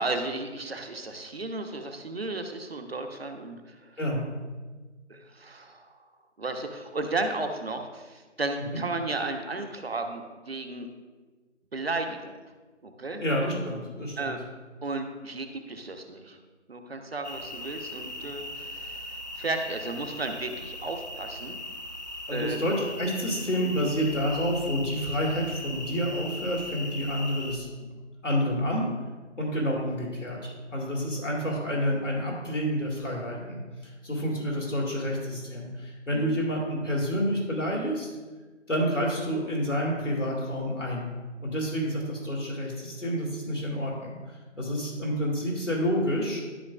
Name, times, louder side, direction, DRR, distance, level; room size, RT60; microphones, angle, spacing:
voice 1, 0.0-4.0 5.1-6.0 6.4-10.9 11.7-12.4 12.8-13.2 14.2-14.4 14.8-16.4 16.7-21.6 22.3-22.6 29.6-29.8 36.1-36.3, right 2 dB, 55° right, 5 dB, 1.0 m, -34 dB
voice 2, 4.0-4.3 8.6-8.8 13.2-14.4 22.3-27.7 28.2-28.9 29.4-38.1 38.7-41.1 41.4-46.4, equal, 80° left, -2 dB, 2.2 m, -29 dB
sound 1, 17.2-27.6, left 1 dB, 35° left, 0.7 m, -39 dB
12.5 x 5.9 x 2.4 m, 1.3 s
figure-of-eight pair, 155°, 36 cm